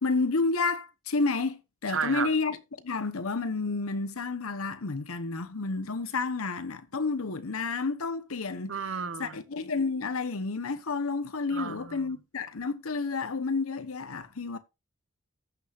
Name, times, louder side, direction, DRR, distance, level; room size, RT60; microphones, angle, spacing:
voice 1, 0.0-2.6 2.8-8.8 9.2-14.6, left 4 dB, 90° left, 1.0 m, -30 dB
voice 2, 1.9-2.3 8.7-9.4 11.5-12.0, right 6 dB, 60° right, 0.8 m, -32 dB
15.0 x 6.5 x 2.5 m
head